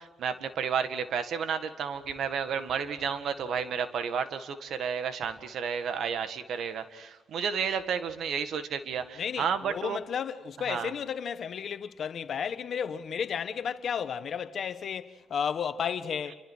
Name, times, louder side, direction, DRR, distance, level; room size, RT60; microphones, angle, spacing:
voice 1, 0.0-10.0 10.7-10.9, right 7 dB, 70° right, 1.8 m, -32 dB
voice 2, 9.2-16.3, left 7 dB, 60° left, 1.4 m, -33 dB
29.0 x 25.5 x 4.7 m
cardioid pair, 80°, 0 cm